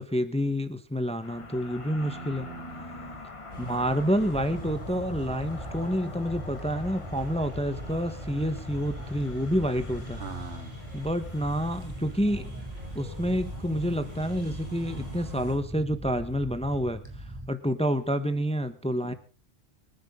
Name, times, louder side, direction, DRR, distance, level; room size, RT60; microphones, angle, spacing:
voice 1, 0.0-2.5 3.6-10.2 10.9-12.6 12.9-17.0 17.5-19.1, equal, 5° left, 10 dB, 1.0 m, -28 dB
sound 1, 1.2-13.9, left 3 dB, 30° left, 1.1 m, -46 dB
voice 2, 2.0-3.2 10.2-10.8 19.0-19.1, right 4 dB, 70° right, 8 dB, 2.3 m, -42 dB
sound 2, 3.5-15.5, left 1 dB, 40° right, 8.3 m, -44 dB
sound 3, 4.3-17.5, right 1 dB, 20° right, 2.8 m, -41 dB
26.0 x 9.9 x 3.8 m, 0.37 s
omnidirectional pair, 1.2 m